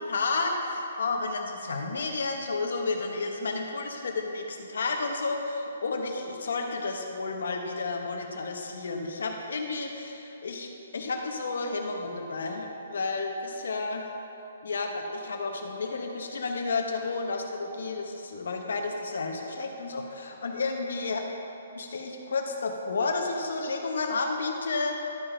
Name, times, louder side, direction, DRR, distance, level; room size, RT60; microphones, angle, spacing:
voice 1, 0.0-14.0 14.6-21.2 21.7-24.9, left 3 dB, 70° left, 2 dB, 1.1 m, -31 dB
12.0 x 4.6 x 4.4 m, 3.0 s
hypercardioid pair, 170°, 0 cm